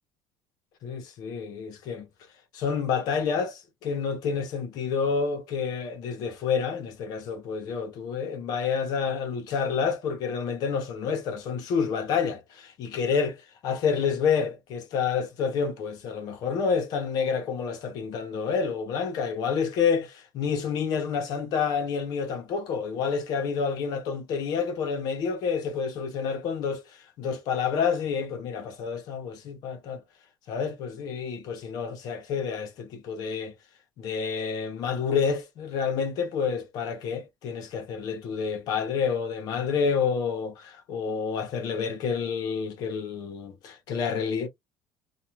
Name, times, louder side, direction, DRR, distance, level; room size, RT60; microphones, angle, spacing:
voice 1, 0.8-2.1 2.5-26.9 27.2-30.0 30.5-33.5 34.0-44.5, left 6 dB, 50° left, 0.9 m, -29 dB
2.4 x 2.4 x 2.9 m
cardioid pair, 180°, 8 cm